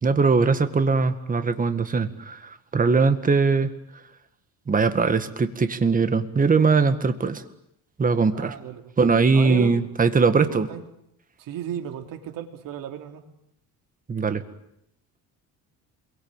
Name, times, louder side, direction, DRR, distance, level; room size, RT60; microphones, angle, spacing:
voice 1, 0.0-3.7 4.7-7.4 8.0-8.6 9.0-10.7 14.1-14.4, right 4 dB, 20° right, 10 dB, 1.9 m, -21 dB
voice 2, 8.3-8.9 9.3-9.8 10.4-10.8 11.4-13.2, right 10 dB, 60° right, 5 dB, 3.7 m, -34 dB
28.0 x 23.0 x 9.0 m, 0.77 s
cardioid pair, 145°, 36 cm